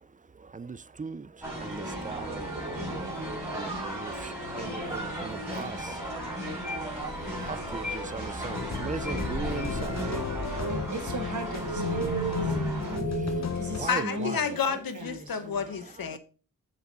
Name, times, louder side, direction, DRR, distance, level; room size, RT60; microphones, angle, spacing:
voice 1, 0.4-6.0 6.3-10.8 12.0-14.3 16.1-16.2, right 4 dB, 25° right, 0.4 m, -40 dB
sound 1, 1.4-13.0, equal, 5° right, 5.0 m, -35 dB
sound 2, 7.0-8.0 8.4-13.5, equal, 75° right, 3.4 m, -33 dB
sound 3, 8.4-13.9, left 6 dB, 50° left, 1.0 m, -36 dB
voice 2, 10.7-12.6 13.5-15.7, right 1 dB, 55° right, 1.8 m, -38 dB
voice 3, 13.9-16.2, left 6 dB, 80° left, 1.1 m, -30 dB
7.0 x 6.6 x 4.2 m
wide cardioid pair, 95°, 35 cm